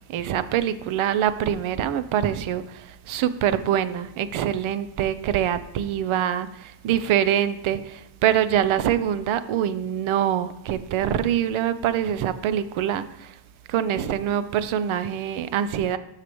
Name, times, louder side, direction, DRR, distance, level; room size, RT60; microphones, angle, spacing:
voice 1, 0.1-13.3 13.7-16.0, right 10 dB, 85° right, 13 dB, 0.6 m, -24 dB
9.4 x 6.7 x 3.0 m, 0.89 s
cardioid pair, 140°, 47 cm